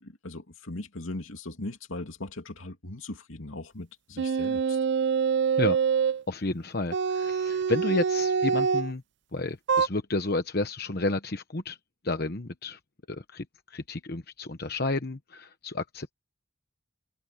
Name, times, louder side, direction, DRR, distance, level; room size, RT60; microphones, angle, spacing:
voice 1, 0.0-4.8, left 2 dB, 80° left, 2.7 m, -39 dB
sound 1, 4.2-6.2 6.9-8.9 9.7-9.9, right 6 dB, 55° right, 0.5 m, -25 dB
voice 2, 6.3-9.0 9.3-11.8 12.0-12.8 13.1-16.1, left 2 dB, 50° left, 1.0 m, -31 dB
open air
head